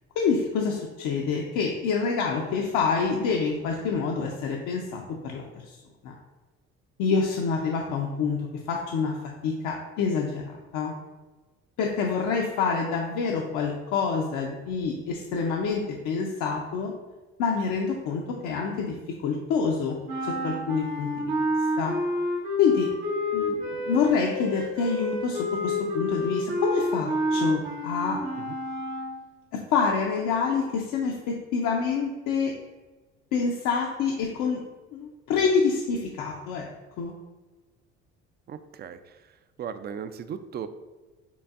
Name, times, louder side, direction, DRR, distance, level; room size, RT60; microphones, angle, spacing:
voice 1, 0.2-5.8 6.0-6.1 7.0-9.1 9.4-10.9 11.8-16.9 17.4-18.9 19.2-20.0 20.2-21.3 21.8-22.0 22.6-22.9 23.3-28.2 29.5-32.5 33.3-34.6 34.9-36.7 37.0-37.1, left 5 dB, 65° left, 0 dB, 0.6 m, -27 dB
sound 1, 20.1-29.2, left 1 dB, 85° right, 1.5 m, -29 dB
voice 2, 38.5-39.3 39.6-40.7, right 7 dB, 30° right, 11 dB, 0.4 m, -37 dB
6.8 x 2.5 x 2.4 m, 1.2 s
hypercardioid pair, 65°, 33 cm